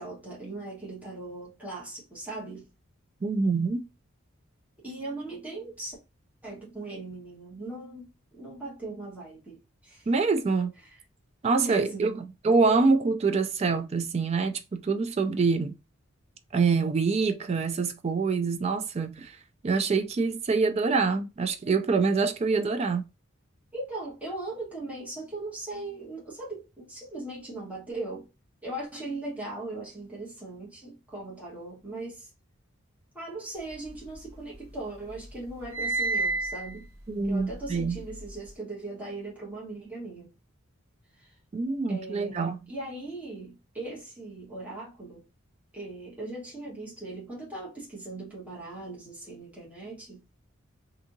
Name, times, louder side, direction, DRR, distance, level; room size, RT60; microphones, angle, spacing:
voice 1, 0.0-2.7 4.8-6.0 6.4-9.6 9.8-10.1 10.8-11.0 11.6-12.2 23.7-28.3 28.6-32.3 33.1-36.9 37.2-40.3 41.2-41.3 41.9-45.2 45.7-50.2, right 2 dB, 5° right, 1.2 m, -39 dB
voice 2, 3.2-3.9 10.1-10.7 11.4-12.1 12.4-15.8 16.5-19.4 19.6-23.0 37.1-38.0 41.5-42.6, right 4 dB, 30° right, 0.3 m, -25 dB
sound 1, 33.7-34.8 35.1-38.5, right 2 dB, 80° right, 1.2 m, -32 dB
2.7 x 2.7 x 2.5 m
head